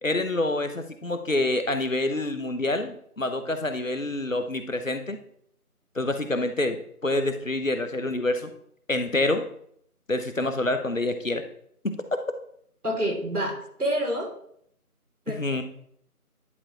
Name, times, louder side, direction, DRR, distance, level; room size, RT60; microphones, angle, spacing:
voice 1, 0.0-5.2 5.9-8.5 8.9-9.4 10.1-11.4 11.8-12.0 15.3-15.6, left 2 dB, 55° left, 8 dB, 1.0 m, -27 dB
voice 2, 12.8-14.3 15.3-15.6, equal, 70° right, 1 dB, 3.1 m, -28 dB
11.0 x 4.7 x 4.2 m, 0.68 s
figure-of-eight pair, 170°, 46 cm